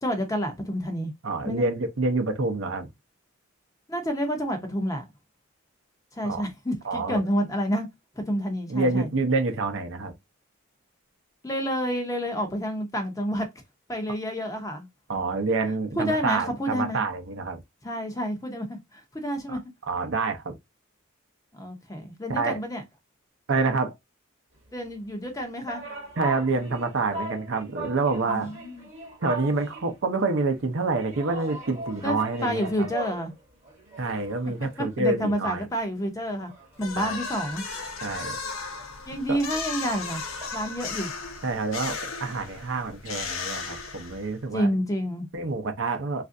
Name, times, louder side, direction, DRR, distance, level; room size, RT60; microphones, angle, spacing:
voice 1, 0.0-1.1 1.5-1.7 3.9-5.0 6.2-7.9 8.2-9.1 11.4-13.5 13.9-14.9 16.0-17.0 17.8-19.6 21.5-22.8 24.7-25.9 28.3-28.9 32.0-33.3 34.8-36.5 36.8-37.6 39.1-40.2 40.5-41.1 44.5-45.3, equal, 15° left, 0.6 m, -29 dB
voice 2, 1.2-2.9 6.2-6.4 6.8-7.2 8.7-10.1 15.1-17.6 19.5-19.6 19.9-20.5 22.3-22.6 23.5-23.9 26.2-28.5 29.2-32.9 34.0-35.7 37.0-37.2 38.0-38.4 39.3-39.4 41.4-44.7 45.3-46.2, right 3 dB, 60° right, 0.6 m, -27 dB
sound 1, 25.2-30.0 30.9-33.3 33.6-35.6 35.9-36.0 36.3-40.5, right 1 dB, 30° right, 0.9 m, -39 dB
sound 2, 36.8-44.4, left 4 dB, 70° left, 0.7 m, -35 dB
3.3 x 2.5 x 2.5 m
head